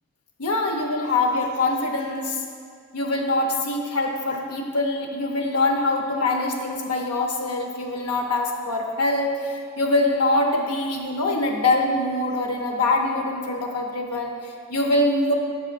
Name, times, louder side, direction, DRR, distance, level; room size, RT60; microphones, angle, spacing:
voice 1, 0.4-2.4 2.9-15.3, left 2 dB, 90° left, 2 dB, 0.7 m, -24 dB
7.9 x 4.9 x 2.5 m, 2.1 s
head